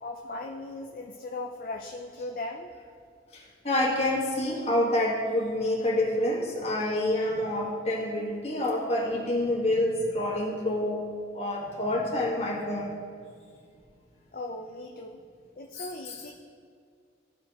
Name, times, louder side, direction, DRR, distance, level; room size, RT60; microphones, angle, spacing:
voice 1, 0.0-2.7 14.3-15.2 15.6-16.3, left 2 dB, 50° left, 2 dB, 0.4 m, -38 dB
voice 2, 3.3-11.1 11.3-12.9 15.8-16.2, left 1 dB, 35° left, -4 dB, 1.5 m, -28 dB
14.0 x 5.1 x 2.9 m, 2.2 s
head